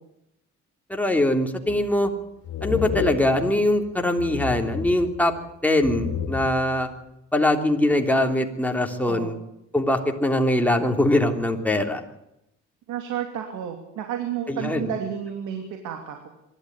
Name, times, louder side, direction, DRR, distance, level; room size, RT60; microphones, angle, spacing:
voice 1, 0.9-2.1 2.6-5.3 5.6-6.9 7.3-9.3 9.7-12.0 14.5-14.9, left 1 dB, 5° left, 3 dB, 3.3 m, -22 dB
sound 1, 1.7-2.1 2.4-3.9 4.2-5.5 5.8-6.8, left 7 dB, 70° left, 2.4 m, -31 dB
voice 2, 9.0-9.3 12.9-16.3, right 9 dB, 90° right, 4 dB, 3.0 m, -31 dB
24.5 x 12.5 x 9.7 m, 0.83 s
cardioid pair, 90°, 30 cm